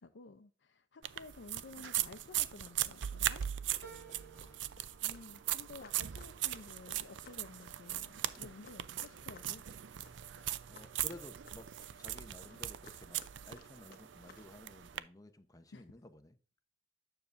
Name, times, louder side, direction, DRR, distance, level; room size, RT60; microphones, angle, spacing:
voice 1, 0.0-3.4 5.0-9.6 15.7-15.9, left 3 dB, 80° left, 0.6 m, -53 dB
sound 1, 1.0-15.0, right 12 dB, 85° right, 0.5 m, -39 dB
sound 2, 1.3-1.4 1.8-2.4 2.7-14.5, left 4 dB, 55° left, 1.0 m, -61 dB
voice 2, 3.8-4.7 8.2-8.5 10.7-16.4, left 1 dB, 20° left, 0.8 m, -54 dB
sound 3, 3.8-8.6 9.1-9.8 10.1-10.2, right 6 dB, 60° right, 1.6 m, -59 dB
9.6 x 6.7 x 2.5 m
head